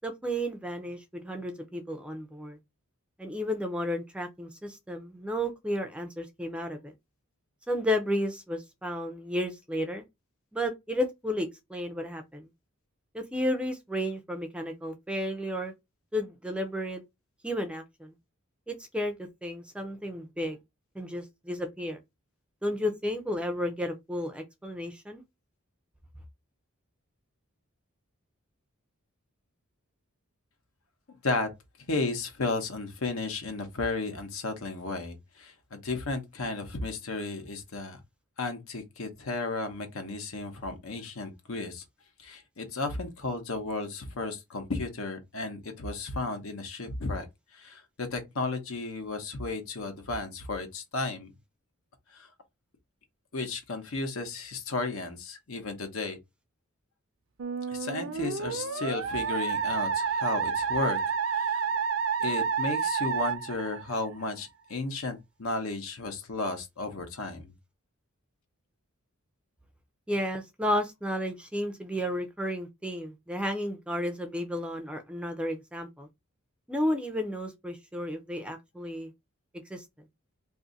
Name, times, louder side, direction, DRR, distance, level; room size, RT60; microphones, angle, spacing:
voice 1, 0.0-2.6 3.2-6.9 7.7-10.0 10.5-12.5 13.1-15.7 16.1-17.0 17.4-18.1 18.7-19.1 19.4-20.6 21.0-22.0 22.6-25.2 70.1-76.1 76.7-79.1 79.7-79.8, equal, 5° right, 0.5 m, -32 dB
voice 2, 31.9-38.0 38.4-41.8 42.2-47.3 47.5-51.3 52.1-52.3 53.3-56.2 57.7-61.0 61.3-61.6 62.2-67.5, left 3 dB, 70° left, 0.9 m, -34 dB
Musical instrument, 57.4-64.3, right 6 dB, 65° right, 0.5 m, -30 dB
2.6 x 2.6 x 3.8 m
head